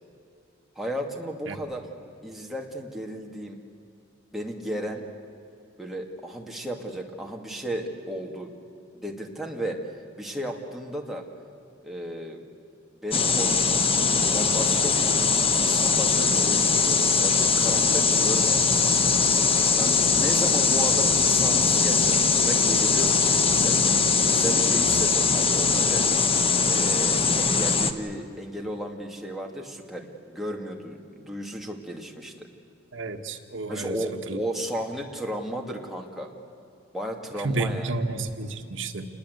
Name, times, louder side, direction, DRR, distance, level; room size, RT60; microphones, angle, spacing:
voice 1, 0.8-1.9 2.2-3.6 4.3-5.0 5.8-8.5 8.9-11.2 11.8-12.4 13.0-13.9 14.3-15.1 15.5-19.0 19.8-22.2 22.5-24.0 24.2-26.0 26.7-32.5 33.7-36.3 36.9-37.9, equal, ahead, 0 dB, 2.4 m, -34 dB
sound 1, 13.1-27.9, left 5 dB, 30° left, 1.2 m, -21 dB
voice 2, 32.9-34.0 34.3-34.4 37.4-39.1, right 2 dB, 70° right, 5 dB, 1.7 m, -30 dB
28.0 x 20.5 x 8.2 m, 2.6 s
head